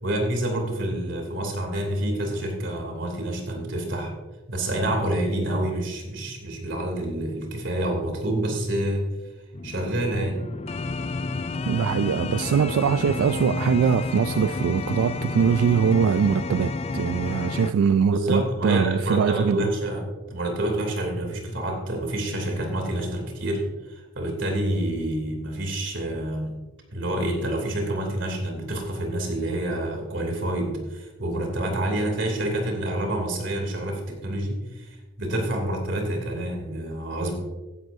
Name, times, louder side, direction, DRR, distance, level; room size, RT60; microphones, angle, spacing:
voice 1, 0.0-4.1 4.5-9.1 9.6-10.4 18.0-26.6 26.9-37.3, right 1 dB, 60° right, 2.9 m, -28 dB
sound 1, 9.5-17.7, left 3 dB, 30° left, 0.3 m, -30 dB
voice 2, 11.7-19.7, right 7 dB, 85° right, 0.3 m, -22 dB
15.5 x 11.0 x 2.7 m
head